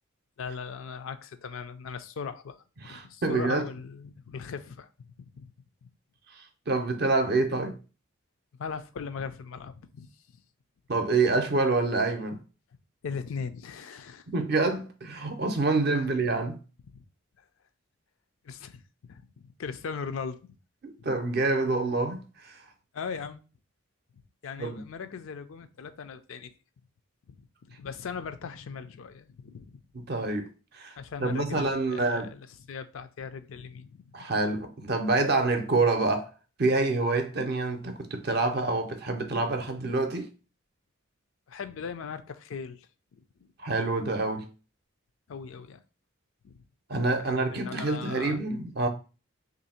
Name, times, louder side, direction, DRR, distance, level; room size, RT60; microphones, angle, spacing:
voice 1, 0.4-5.5 5.8-5.9 8.6-10.1 13.0-14.2 15.7-15.8 16.9-17.0 18.4-20.5 21.0-21.1 22.9-23.4 24.4-26.5 27.3-29.8 31.0-34.3 41.5-42.9 43.1-43.5 45.3-45.8 46.4-46.6 47.2-48.4, left 5 dB, 75° left, 0.4 m, -39 dB
voice 2, 2.8-3.6 6.4-7.8 10.9-12.4 14.3-16.6 20.8-22.6 24.6-24.8 29.9-30.5 30.7-30.9 31.2-32.3 34.1-36.3 36.6-40.3 43.6-44.4 46.9-48.9, right 3 dB, 50° right, 0.5 m, -27 dB
3.2 x 2.6 x 4.2 m
head